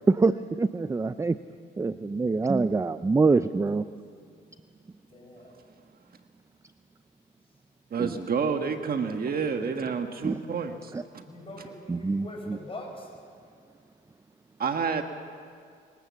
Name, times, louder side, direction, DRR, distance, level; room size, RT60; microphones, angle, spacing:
voice 1, 0.1-1.4 1.8-3.8 8.0-8.1 10.2-10.4 10.9-11.0 11.9-12.6, right 3 dB, 15° right, 13 dB, 0.5 m, -25 dB
voice 2, 5.1-5.6 11.3-13.1, left 1 dB, 25° left, 1 dB, 6.7 m, -43 dB
voice 3, 7.9-11.2 14.6-15.0, right 5 dB, 50° right, 6 dB, 1.4 m, -29 dB
26.0 x 17.5 x 7.4 m, 2.2 s
cardioid pair, 90°, 20 cm